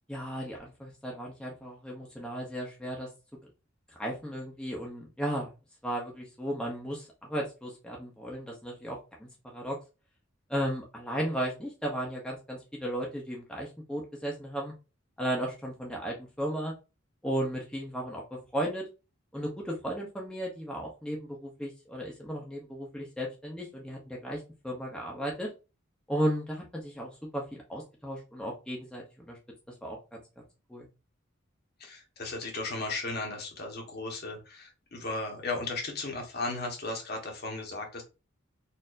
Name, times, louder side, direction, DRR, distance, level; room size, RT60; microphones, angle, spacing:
voice 1, 0.1-3.1 4.0-5.5 5.8-9.8 10.5-14.7 15.2-16.7 17.2-18.8 19.3-25.5 26.1-29.4 29.8-30.2 30.7-30.9, equal, 5° left, -2 dB, 0.8 m, -35 dB
voice 2, 31.8-38.0, left 2 dB, 50° left, 1 dB, 1.3 m, -35 dB
4.3 x 2.7 x 2.6 m, 0.29 s
head